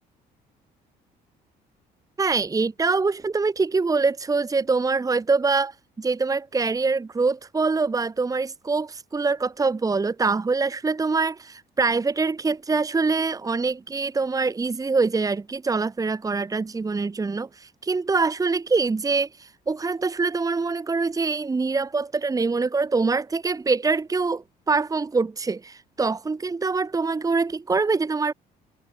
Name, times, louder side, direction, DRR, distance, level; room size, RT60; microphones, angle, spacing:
voice 1, 2.2-28.3, right 4 dB, 20° right, 1.9 m, -24 dB
cardioid pair, 110°, 17 cm